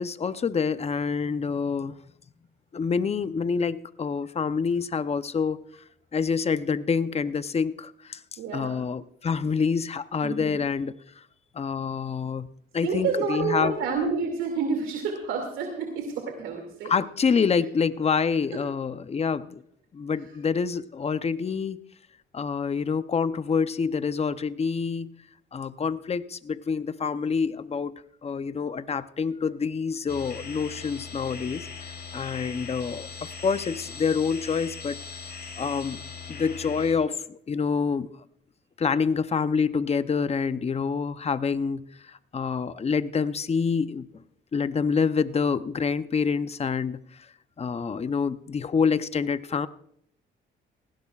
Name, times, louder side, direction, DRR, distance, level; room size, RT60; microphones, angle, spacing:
voice 1, 0.0-2.0 2.7-5.6 6.1-11.2 11.5-12.5 12.7-13.8 16.8-19.6 19.9-21.8 22.3-25.1 25.5-35.0 35.6-36.0 36.3-38.1 38.8-44.1 44.5-47.3 47.6-49.7, left 5 dB, 30° left, 13 dB, 0.7 m, -27 dB
voice 2, 8.4-8.9 10.2-10.6 12.8-16.9 18.5-18.6, right 5 dB, 90° right, 2 dB, 2.5 m, -29 dB
sound 1, 30.1-36.9, left 6 dB, 55° left, 4.1 m, -40 dB
19.0 x 16.5 x 2.4 m, 0.69 s
cardioid pair, 90°, 20 cm